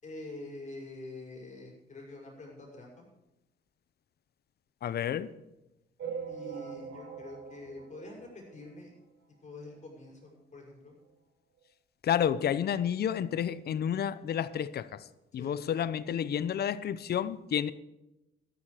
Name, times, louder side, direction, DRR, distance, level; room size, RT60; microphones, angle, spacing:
voice 1, 0.0-3.1 6.3-8.9 9.4-10.9 15.3-15.5, left 2 dB, 40° left, -1 dB, 6.2 m, -46 dB
voice 2, 4.8-5.3 12.0-15.0 15.3-17.7, left 9 dB, 55° left, 15 dB, 0.7 m, -30 dB
sound 1, 6.0-8.9 9.3-9.4 9.6-9.8 10.0-10.1 11.0-11.1 11.6-11.7, right 7 dB, 70° right, 5.6 m, -42 dB
13.0 x 12.0 x 5.0 m, 0.94 s
cardioid pair, 90°, 20 cm